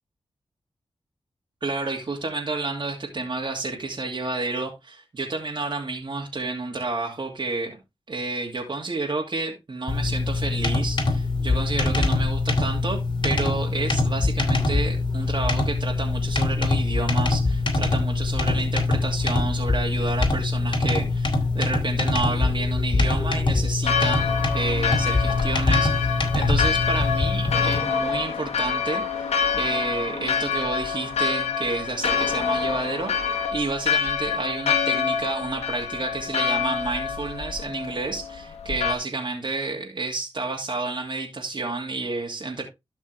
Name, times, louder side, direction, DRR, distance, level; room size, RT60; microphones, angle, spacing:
voice 1, 1.6-7.8 8.1-42.6, right 3 dB, 45° right, 2.7 m, -30 dB
sound 1, 9.9-27.8, left 3 dB, 45° left, 2.8 m, -23 dB
Church bell, 23.8-39.0, left 6 dB, 85° left, 1.5 m, -26 dB
12.5 x 5.4 x 3.4 m
cardioid pair, 50°, 11 cm